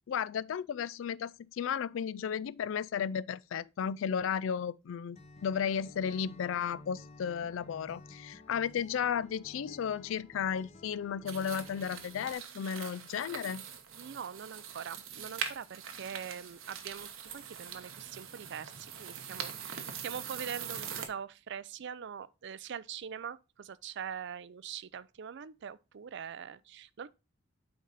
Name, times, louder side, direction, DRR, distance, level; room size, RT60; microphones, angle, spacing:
voice 1, 0.1-13.6, left 7 dB, 70° left, 0.3 m, -34 dB
Acoustic guitar, 5.1-12.3, left 2 dB, 35° left, 1.0 m, -53 dB
sound 1, 11.3-21.1, right 7 dB, 90° right, 1.1 m, -43 dB
voice 2, 14.0-17.1 17.3-27.1, right 7 dB, 60° right, 0.4 m, -43 dB
9.3 x 4.0 x 3.9 m
head